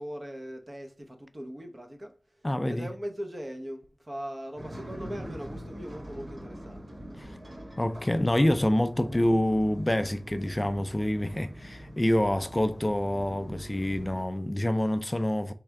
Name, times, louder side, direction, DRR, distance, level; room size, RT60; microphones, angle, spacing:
voice 1, 0.0-2.2 2.7-6.9 7.2-7.3 9.0-9.3, equal, 40° right, 0.8 m, -40 dB
voice 2, 2.4-2.9 7.2-7.4 7.8-15.5, left 1 dB, 20° left, 0.3 m, -27 dB
sound 1, 4.6-14.3, equal, 65° right, 1.8 m, -44 dB
3.5 x 3.2 x 4.6 m
wide cardioid pair, 65°, 0 cm